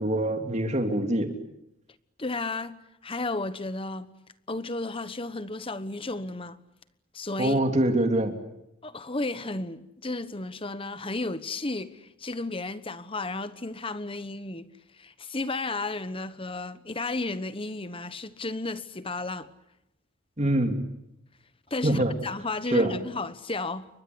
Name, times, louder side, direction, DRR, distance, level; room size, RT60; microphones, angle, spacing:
voice 1, 0.0-1.3 7.4-8.4 20.4-20.8 21.8-22.1 22.7-22.9, right 1 dB, 30° right, 3.1 m, -24 dB
voice 2, 2.2-4.1 4.5-6.6 7.1-7.6 8.8-14.7 15.0-19.5 21.7-23.9, left 2 dB, 25° left, 1.1 m, -33 dB
29.5 x 24.0 x 8.0 m
head